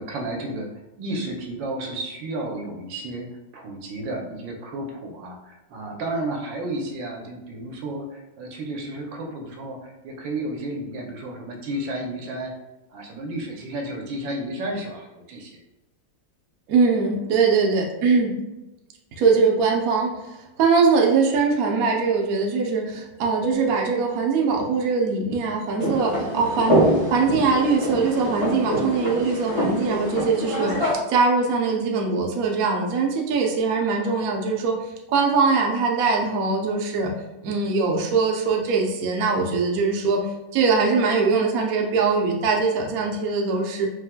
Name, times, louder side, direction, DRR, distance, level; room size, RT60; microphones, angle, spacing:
voice 1, 0.0-12.5 12.9-15.6, right 1 dB, 80° right, 1 dB, 1.4 m, -32 dB
voice 2, 16.7-18.4 19.2-26.8 27.1-34.8 35.1-37.1 37.4-40.2 40.5-43.9, right 4 dB, 65° right, 0 dB, 0.9 m, -22 dB
Keyboard (musical), 23.4-26.0, right 3 dB, 85° left, 1.4 m, -35 dB
sound 1, 25.8-30.9, equal, 40° left, 1.7 m, -25 dB
4.8 x 3.1 x 2.2 m, 0.99 s
omnidirectional pair, 2.0 m